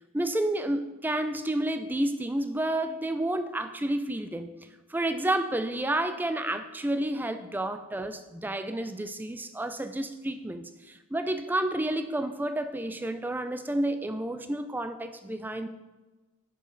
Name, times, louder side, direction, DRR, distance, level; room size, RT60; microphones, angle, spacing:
voice 1, 0.1-4.6 4.9-15.7, right 1 dB, 10° right, 9 dB, 0.3 m, -30 dB
8.9 x 5.2 x 3.8 m, 1.2 s
head